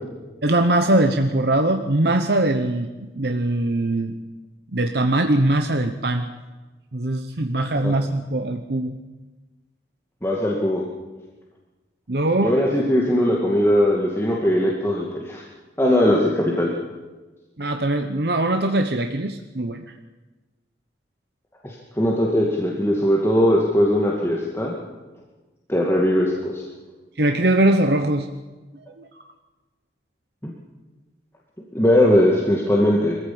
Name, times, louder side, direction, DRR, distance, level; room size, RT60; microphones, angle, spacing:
voice 1, 0.4-4.2 4.7-6.2 6.9-9.0 12.1-12.5 17.6-19.8 27.2-28.3 29.0-29.1, right 1 dB, 60° right, 5 dB, 1.0 m, -21 dB
voice 2, 10.2-10.8 12.4-15.4 15.8-16.7 21.6-24.8 25.7-26.6 30.4-30.5 31.7-33.2, equal, 15° left, -3 dB, 2.2 m, -20 dB
22.5 x 15.0 x 8.7 m, 1.2 s
head